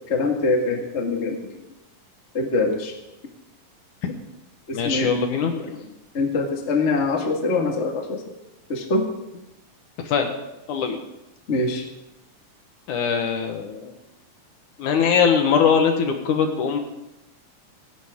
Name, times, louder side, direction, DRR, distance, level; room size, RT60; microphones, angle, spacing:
voice 1, 0.1-1.5 2.3-2.9 4.7-5.1 6.1-8.2 8.7-9.0 11.5-11.8, left 3 dB, 25° left, 1 dB, 1.5 m, -23 dB
voice 2, 4.7-5.8 10.1-10.3 10.7-11.0 12.9-13.9 14.8-16.8, left 6 dB, 65° left, 4 dB, 2.6 m, -21 dB
17.0 x 16.5 x 3.7 m, 0.92 s
omnidirectional pair, 4.1 m